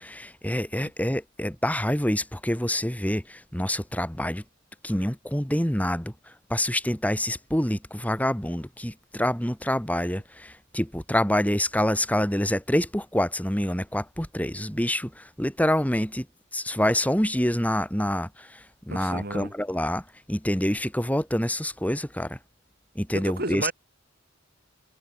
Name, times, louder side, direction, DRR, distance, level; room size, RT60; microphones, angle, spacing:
voice 1, 0.0-4.4 4.8-6.1 6.5-16.3 16.5-22.4 22.9-23.7, left 1 dB, 5° left, 5.8 m, -26 dB
voice 2, 18.9-19.5 23.1-23.7, right 2 dB, 50° right, 7.7 m, -32 dB
head